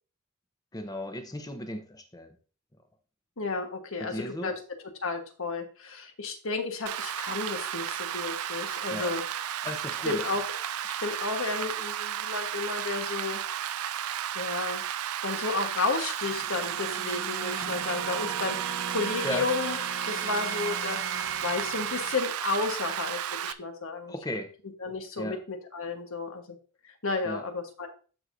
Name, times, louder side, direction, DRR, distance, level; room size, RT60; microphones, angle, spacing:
voice 1, 0.7-2.3 4.0-4.5 8.9-9.1 9.6-10.2 19.2-19.5 24.1-24.5 25.2-25.4 27.2-27.4, left 1 dB, 15° left, 7 dB, 0.8 m, -35 dB
voice 2, 3.4-4.5 5.0-9.2 10.0-10.5 10.8-13.4 14.3-14.8 15.2-19.8 20.1-21.0 21.4-24.1 24.8-26.6 26.8-27.9, left 3 dB, 65° left, 5 dB, 1.3 m, -32 dB
Rain, 6.9-23.5, right 10 dB, 80° right, 0.4 m, -33 dB
sound 1, 16.2-22.2, right 6 dB, 60° right, 0.9 m, -37 dB
13.0 x 4.6 x 2.6 m, 0.38 s
head